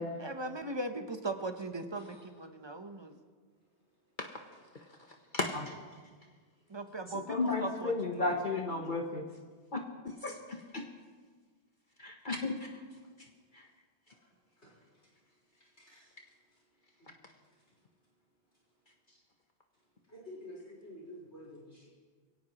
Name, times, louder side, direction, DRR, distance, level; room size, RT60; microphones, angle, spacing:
voice 1, 0.2-3.1 6.7-8.4, right 2 dB, 25° right, 7 dB, 0.8 m, -39 dB
voice 2, 5.3-5.7 7.3-9.2 9.7-9.8 10.2-10.3 10.7-10.8 12.0-12.6, left 3 dB, 50° left, 2 dB, 1.1 m, -33 dB
voice 3, 15.8-16.1 17.0-17.1 19.1-19.2 20.1-21.8, left 1 dB, 75° left, -6 dB, 4.7 m, -50 dB
22.0 x 17.5 x 3.0 m, 1.5 s
omnidirectional pair, 1.2 m